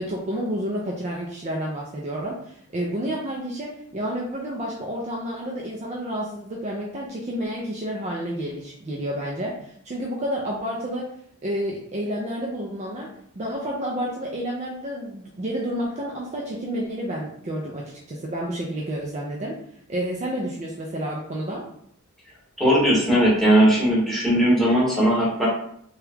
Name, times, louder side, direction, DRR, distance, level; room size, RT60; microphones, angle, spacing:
voice 1, 0.0-11.1 11.4-19.6 19.9-21.6, equal, 30° right, -3 dB, 0.4 m, -30 dB
voice 2, 22.6-25.5, right 1 dB, ahead, -6 dB, 0.9 m, -18 dB
2.9 x 2.3 x 3.3 m, 0.67 s
head